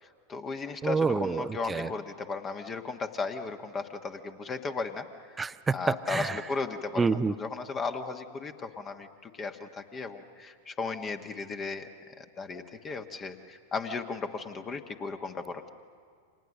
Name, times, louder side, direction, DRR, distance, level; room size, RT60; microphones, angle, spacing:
voice 1, 0.0-5.4 5.7-15.7, left 4 dB, 25° left, 7 dB, 1.3 m, -36 dB
voice 2, 0.8-1.9 5.4-6.4 7.0-7.3, right 4 dB, 15° right, 14 dB, 0.7 m, -28 dB
29.5 x 26.5 x 6.6 m, 2.1 s
figure-of-eight pair, 90°, 0 cm